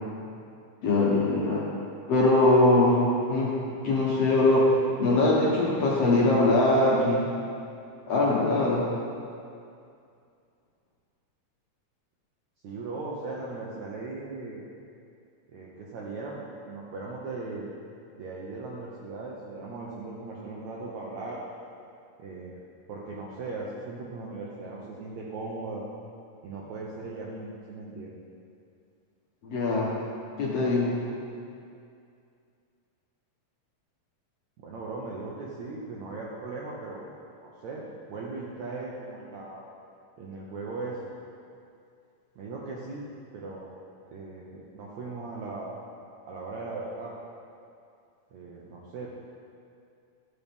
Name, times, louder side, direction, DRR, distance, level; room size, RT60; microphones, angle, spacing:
voice 1, 0.8-1.6 2.1-3.6 3.8-4.7 5.0-7.2 8.1-8.8 29.4-29.9 30.4-31.0, left 2 dB, 65° left, -5 dB, 1.6 m, -22 dB
voice 2, 12.6-14.6 15.5-17.7 18.2-21.4 22.2-22.6 22.9-25.9 26.4-28.1 34.6-37.0 37.4-39.6 40.2-41.1 42.3-43.1 43.3-43.7 44.1-45.8 46.2-47.1 48.3-49.1, right 3 dB, 75° right, -4 dB, 1.7 m, -38 dB
13.0 x 7.2 x 3.5 m, 2.4 s
omnidirectional pair, 4.2 m